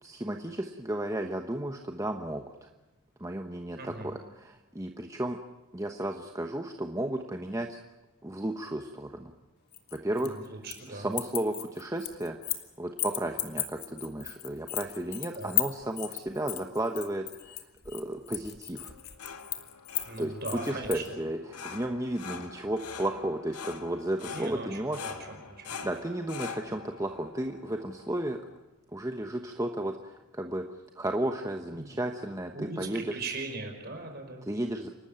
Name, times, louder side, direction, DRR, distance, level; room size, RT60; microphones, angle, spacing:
voice 1, 0.0-2.7 3.2-5.4 5.7-7.8 8.2-9.3 9.9-10.4 10.9-18.9 20.2-20.3 20.7-25.0 25.8-28.4 28.9-30.6 30.9-33.2 34.4-34.9, right 1 dB, 15° right, 4 dB, 1.0 m, -33 dB
voice 2, 3.8-4.1 10.1-11.1 15.3-15.5 20.1-21.0 24.2-25.8 31.7-31.9 32.5-34.5, right 3 dB, 45° right, 4 dB, 5.2 m, -39 dB
sound 1, 9.7-10.9 11.1-12.7 13.0-21.1, left 14 dB, 45° left, 1.9 m, -35 dB
sound 2, 18.8-28.6, left 6 dB, 90° left, 1.8 m, -44 dB
28.5 x 12.5 x 8.8 m, 1.1 s
head